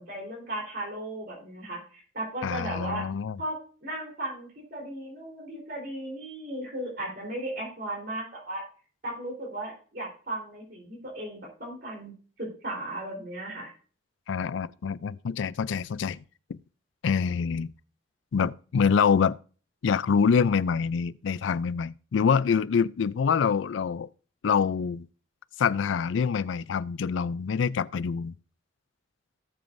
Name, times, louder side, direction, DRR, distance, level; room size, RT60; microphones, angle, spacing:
voice 1, 0.0-3.0 3.4-8.6 9.0-12.1 12.4-13.7, right 1 dB, 55° right, 3.8 m, -36 dB
voice 2, 2.4-3.4 14.3-16.2 16.5-16.6 17.0-17.7 18.3-19.4 19.8-24.1 24.4-25.1 25.6-28.3, left 6 dB, 85° left, 0.4 m, -25 dB
16.5 x 7.0 x 2.6 m
head